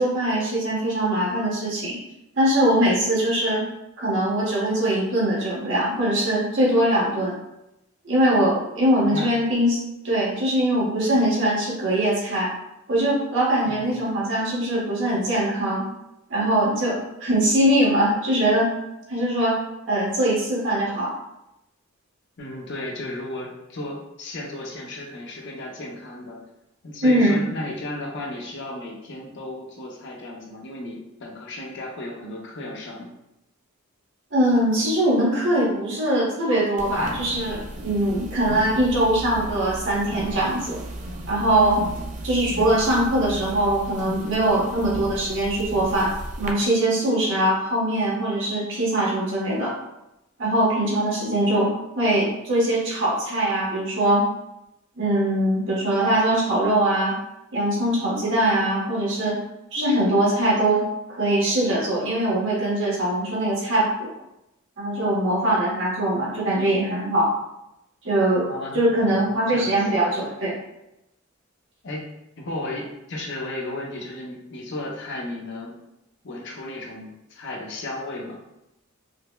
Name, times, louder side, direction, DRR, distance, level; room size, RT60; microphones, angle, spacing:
voice 1, 0.0-2.0 2.4-3.6 4.0-7.4 8.0-12.5 12.9-15.8 16.3-18.7 19.1-19.6 19.9-21.1 27.0-27.4 34.3-40.8 41.3-41.8 42.2-49.7 50.4-54.3 55.0-57.2 57.5-59.4 59.7-64.1 64.8-67.3 68.0-70.5, right 1 dB, 65° right, -5 dB, 1.1 m, -22 dB
voice 2, 13.7-14.0 22.4-26.4 26.8-33.1 38.0-38.3 68.5-69.9 71.8-72.1 72.4-75.8 76.2-78.4, left 1 dB, 60° left, -1 dB, 0.7 m, -34 dB
sound 1, 36.8-46.5, right 1 dB, 35° right, 0.4 m, -35 dB
4.9 x 2.1 x 2.2 m, 0.89 s
head